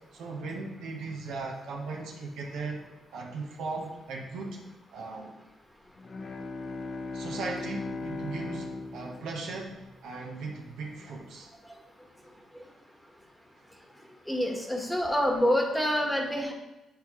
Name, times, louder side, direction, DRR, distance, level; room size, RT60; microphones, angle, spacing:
voice 1, 0.1-2.8 3.1-4.6 4.9-5.4 7.1-11.5, right 3 dB, 80° right, 0 dB, 1.1 m, -38 dB
Bowed string instrument, 6.0-10.5, left 3 dB, 45° left, 0.7 m, -39 dB
voice 2, 14.3-16.5, equal, 5° left, 1 dB, 1.2 m, -26 dB
8.6 x 3.8 x 3.1 m, 0.99 s
cardioid pair, 90°, 0 cm